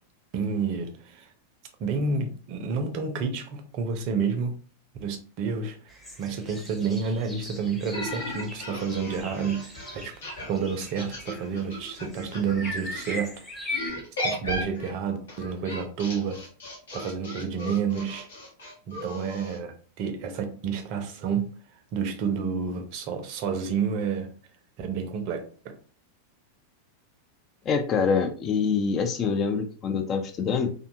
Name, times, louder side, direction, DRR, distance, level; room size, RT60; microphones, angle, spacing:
voice 1, 0.3-1.3 1.8-4.5 5.0-5.8 6.2-9.7 10.0-10.1 10.5-13.3 14.2-16.4 16.9-18.3 18.9-21.5 21.9-24.3 24.8-25.7, right 5 dB, 45° right, 0.5 m, -29 dB
sound 1, 5.9-13.9, left 1 dB, 5° left, 0.7 m, -40 dB
sound 2, 7.9-13.2 13.7-19.6, left 1 dB, 65° left, 0.9 m, -36 dB
voice 2, 27.7-30.7, left 5 dB, 30° left, 0.3 m, -25 dB
2.6 x 2.2 x 2.6 m
figure-of-eight pair, 90°, 0 cm